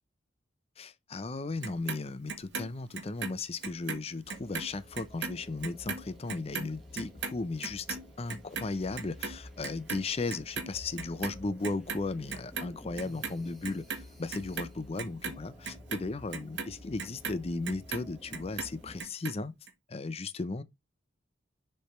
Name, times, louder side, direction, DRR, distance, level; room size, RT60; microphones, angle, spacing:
voice 1, 0.8-19.5 19.9-20.6, left 3 dB, 30° left, 0.5 m, -36 dB
Clock, 1.6-4.0 4.3-10.7 11.0-12.0 12.3-13.3 13.6-18.1 18.3-19.3 19.7-19.8, right 5 dB, 65° right, 1.2 m, -38 dB
sound 1, 4.2-19.0, left 1 dB, ahead, 1.2 m, -51 dB
6.8 x 3.3 x 4.3 m
head